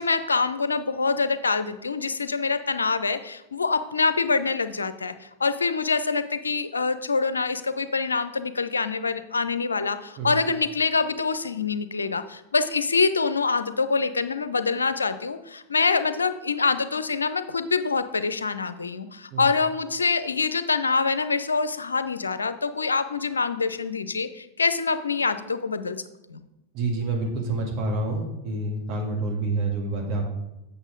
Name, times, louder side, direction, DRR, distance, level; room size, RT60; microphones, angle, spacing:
voice 1, 0.0-26.0 26.3-26.4, left 4 dB, 75° left, 12 dB, 0.5 m, -25 dB
voice 2, 26.7-30.3, right 2 dB, 40° right, 0 dB, 1.8 m, -28 dB
8.1 x 6.5 x 3.8 m, 0.95 s
figure-of-eight pair, 90°, 0 cm